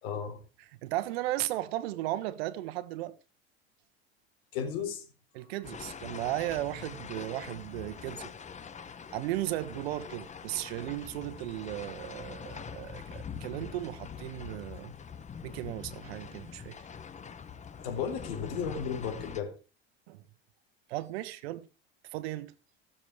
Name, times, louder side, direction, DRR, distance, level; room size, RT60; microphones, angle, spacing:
voice 1, 0.0-0.4 4.5-5.1 5.4-5.5 17.8-19.5, left 7 dB, 70° left, 3.9 m, -34 dB
voice 2, 0.8-3.1 5.3-8.3 9.1-14.9 15.4-16.8 20.1-20.2 20.9-21.7 22.1-22.5, right 15 dB, 75° right, 1.2 m, -35 dB
sound 1, 5.6-19.4, left 7 dB, 25° left, 1.0 m, -44 dB
16.5 x 7.2 x 4.9 m
hypercardioid pair, 95°, 31 cm